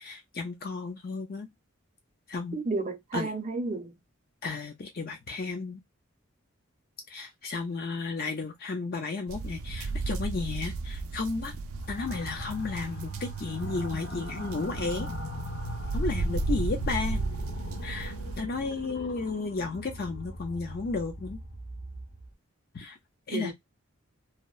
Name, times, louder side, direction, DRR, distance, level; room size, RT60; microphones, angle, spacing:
voice 1, 0.0-1.5 2.3-2.6 3.1-3.3 4.4-5.8 7.1-11.5 11.9-15.1 15.9-17.2 17.8-21.4 22.7-23.0 23.3-23.5, left 4 dB, 45° left, 0.5 m, -33 dB
voice 2, 2.5-3.9 23.3-23.5, right 3 dB, 35° right, 0.5 m, -32 dB
sound 1, 9.3-18.4, right 3 dB, 85° right, 0.4 m, -34 dB
sound 2, 11.7-22.2, equal, 70° left, 1.4 m, -40 dB
2.7 x 2.0 x 2.2 m
head